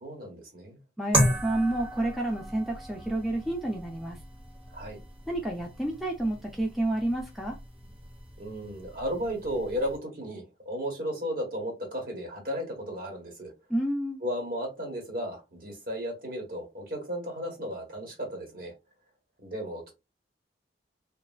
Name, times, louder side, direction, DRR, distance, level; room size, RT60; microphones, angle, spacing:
voice 1, 0.0-0.8 4.7-5.0 8.4-13.5 14.2-18.7 19.4-19.9, equal, 55° right, 1.3 m, -34 dB
voice 2, 1.0-4.2 5.3-7.6 13.7-14.2, right 1 dB, ahead, 0.4 m, -30 dB
sound 1, 1.1-10.0, right 1 dB, 30° right, 1.0 m, -34 dB
3.3 x 2.3 x 2.3 m
head